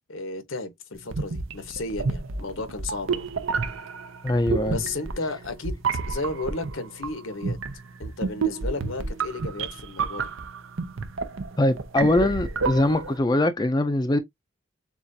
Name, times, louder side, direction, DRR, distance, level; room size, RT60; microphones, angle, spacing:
voice 1, 0.1-3.3 4.6-7.6 8.0-10.3, left 3 dB, 80° left, 1.1 m, -33 dB
sound 1, 1.0-13.2, right 4 dB, 80° right, 0.7 m, -30 dB
voice 2, 4.2-4.8 11.6-14.2, left 1 dB, 20° left, 0.4 m, -22 dB
7.1 x 2.5 x 2.7 m
head